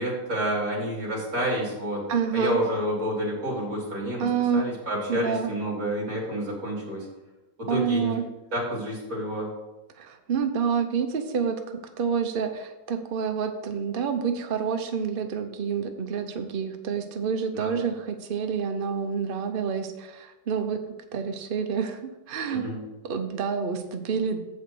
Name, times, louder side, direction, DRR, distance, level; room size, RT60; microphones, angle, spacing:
voice 1, 0.0-2.0 2.3-4.3 4.5-7.1 7.6-8.2 8.5-9.5 17.5-17.8 22.5-22.8, equal, 50° right, -4 dB, 3.5 m, -29 dB
voice 2, 2.1-2.6 4.2-4.8 5.1-5.5 7.7-8.2 10.0-20.8 21.1-22.6 23.0-24.4, right 6 dB, 70° right, 6 dB, 0.5 m, -28 dB
7.9 x 5.6 x 6.1 m, 1.0 s
omnidirectional pair, 2.0 m